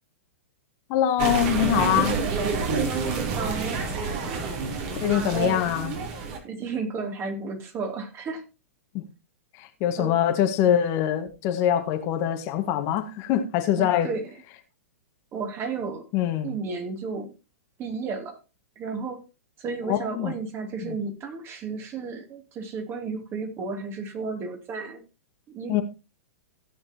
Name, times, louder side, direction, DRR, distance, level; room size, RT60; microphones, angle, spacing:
voice 1, 0.9-2.2 5.0-5.9 8.9-9.0 9.5-14.1 16.1-16.5 19.9-20.3 20.8-21.0 25.7-25.8, left 10 dB, 40° left, 1.7 m, -24 dB
sound 1, 1.2-6.4, right 4 dB, 45° right, 3.5 m, -28 dB
voice 2, 2.7-3.8 5.3-5.7 6.4-8.4 10.0-10.1 13.8-14.3 15.3-16.0 16.4-17.3 17.8-18.4 18.8-19.2 19.6-25.0 25.5-25.8, right 4 dB, 30° right, 2.8 m, -33 dB
16.0 x 8.5 x 2.9 m
figure-of-eight pair, 105°, 8 cm